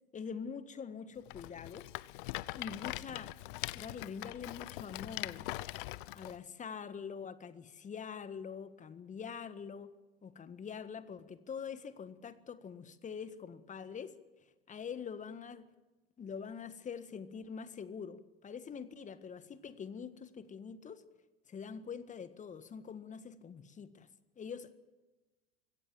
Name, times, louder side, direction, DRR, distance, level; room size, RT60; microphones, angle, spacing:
voice 1, 0.1-1.9 2.5-3.3 3.7-5.5 6.1-9.9 10.2-14.1 14.7-15.7 16.2-21.0 21.5-24.1 24.4-24.7, left 6 dB, 25° left, 1.6 m, -44 dB
Rattle, 1.3-6.4, left 19 dB, 60° left, 0.7 m, -42 dB
23.5 x 17.0 x 7.7 m
figure-of-eight pair, 80°, 30 cm